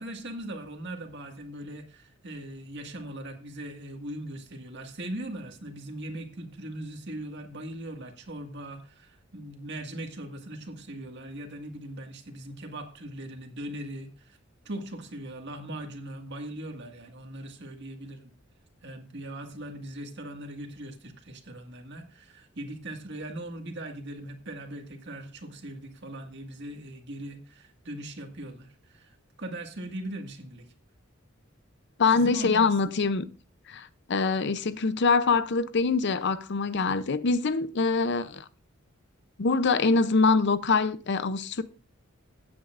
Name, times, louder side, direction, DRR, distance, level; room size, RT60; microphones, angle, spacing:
voice 1, 0.0-14.4 14.7-18.3 18.8-30.7 32.1-32.7, right 1 dB, 55° right, 1.9 m, -40 dB
voice 2, 32.0-33.3 33.7-38.4 39.4-41.6, left 4 dB, 55° left, 0.6 m, -24 dB
16.5 x 8.7 x 2.5 m
head